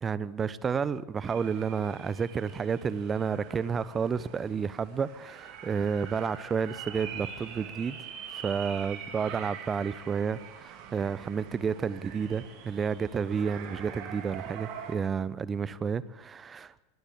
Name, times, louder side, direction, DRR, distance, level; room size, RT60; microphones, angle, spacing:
voice 1, 0.0-8.0 8.3-16.8, right 6 dB, 20° right, 19 dB, 0.9 m, -31 dB
sound 1, 1.3-15.0, right 8 dB, 40° right, 3.7 m, -44 dB
22.0 x 19.0 x 8.5 m, 1.0 s
figure-of-eight pair, 90°, 0 cm